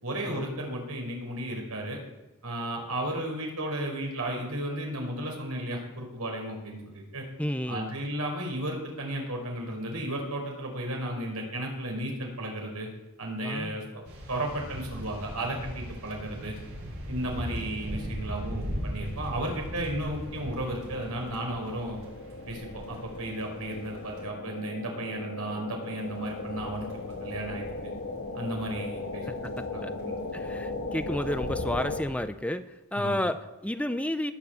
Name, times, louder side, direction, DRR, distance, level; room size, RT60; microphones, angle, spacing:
voice 1, 0.0-2.0 2.4-7.2 7.7-12.9 13.2-13.8 14.3-16.5 17.1-22.0 22.5-26.9 27.2-27.6 28.3-29.3 29.7-30.5 33.0-33.2, right 1 dB, 85° right, 1 dB, 5.2 m, -34 dB
voice 2, 7.4-7.9 13.4-13.8 29.3-29.9 30.3-34.3, left 1 dB, 5° left, 10 dB, 0.6 m, -32 dB
sound 1, 14.0-24.2 25.9-32.1, equal, 65° right, 6.0 m, -40 dB
sound 2, 19.1-32.0, left 3 dB, 55° left, 2.3 m, -38 dB
20.0 x 7.6 x 8.3 m, 1.0 s
head